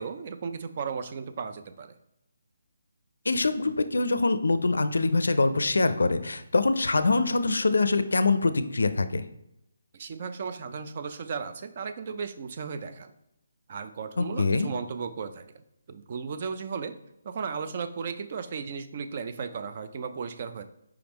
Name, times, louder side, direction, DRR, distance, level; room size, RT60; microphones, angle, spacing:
voice 1, 0.0-2.0 9.9-13.1 13.7-15.4 15.9-17.0 17.2-20.6, right 5 dB, 40° right, 9 dB, 0.4 m, -35 dB
voice 2, 3.3-9.2 14.2-14.7, left 3 dB, 85° left, 11 dB, 0.4 m, -24 dB
4.7 x 3.5 x 3.0 m, 0.84 s
hypercardioid pair, 160°, 0 cm